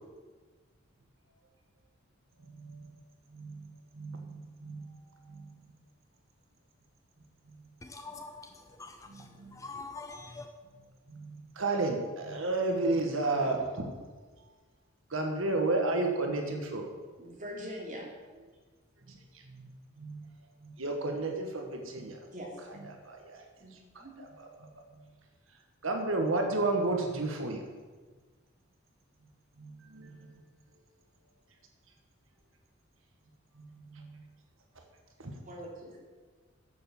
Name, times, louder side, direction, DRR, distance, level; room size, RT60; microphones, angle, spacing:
voice 1, 2.5-2.9 3.3-3.7 3.9-4.9 5.3-5.7 9.1-9.5 11.1-13.9 15.1-16.8 19.5-19.7 20.0-20.3 20.6-22.2 23.0-23.4 23.9-24.0 24.6-24.7 25.8-27.6 29.6-30.3 33.6-34.2 35.2-35.3, right 2 dB, 75° right, 3 dB, 1.5 m, -32 dB
voice 2, 7.8-10.5, left 3 dB, 15° left, 5 dB, 0.6 m, -45 dB
voice 3, 16.9-18.0 22.3-22.8 23.6-23.7 24.0-24.1 35.4-36.0, equal, 40° right, -3 dB, 3.0 m, -43 dB
10.0 x 7.2 x 7.0 m, 1.4 s
head